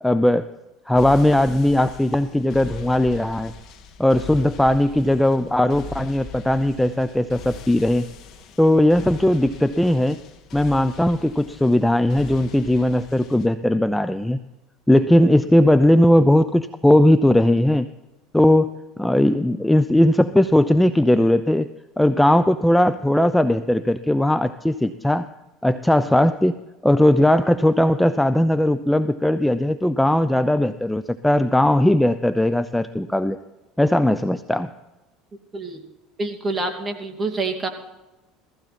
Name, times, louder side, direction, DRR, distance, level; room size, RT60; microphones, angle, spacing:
voice 1, 0.0-0.5 0.9-3.5 4.0-8.1 8.6-10.2 10.5-14.4 14.9-17.9 18.3-18.7 19.0-21.7 22.0-25.3 25.6-33.4 33.8-34.7, left 1 dB, 5° left, 12 dB, 0.6 m, -18 dB
sound 1, 0.9-13.5, left 5 dB, 50° left, 2.1 m, -40 dB
voice 2, 36.2-37.7, right 3 dB, 20° right, 5 dB, 2.6 m, -27 dB
16.5 x 15.0 x 4.3 m, 1.0 s
supercardioid pair, 90°, 0 cm